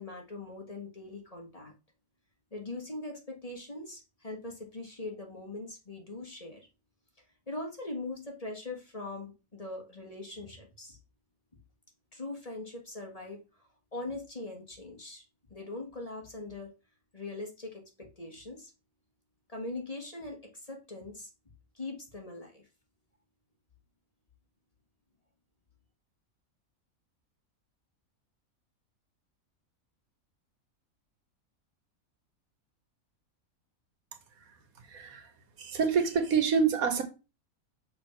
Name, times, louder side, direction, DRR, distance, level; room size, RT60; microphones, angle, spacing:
voice 1, 0.0-1.7 2.5-6.7 7.2-11.0 12.1-13.7 13.9-15.2 15.5-16.7 17.1-18.7 19.5-21.3 21.7-22.7, left 2 dB, 25° left, 1.7 m, -41 dB
voice 2, 34.9-35.3 35.6-37.0, right 6 dB, 75° right, 1.5 m, -27 dB
6.5 x 3.5 x 5.8 m
omnidirectional pair, 1.5 m